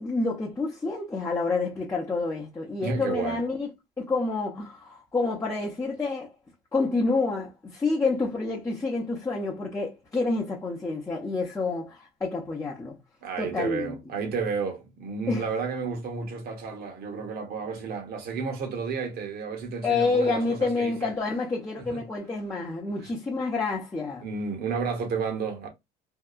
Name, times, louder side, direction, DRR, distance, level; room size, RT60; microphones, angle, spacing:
voice 1, 0.0-3.7 4.0-6.3 6.7-13.0 13.4-14.0 15.3-15.5 19.8-24.3, left 3 dB, 15° left, 0.7 m, -28 dB
voice 2, 2.8-3.4 13.2-21.1 21.8-22.0 24.2-25.7, right 5 dB, 65° right, 1.1 m, -32 dB
2.7 x 2.3 x 2.3 m
cardioid pair, 110°, 17 cm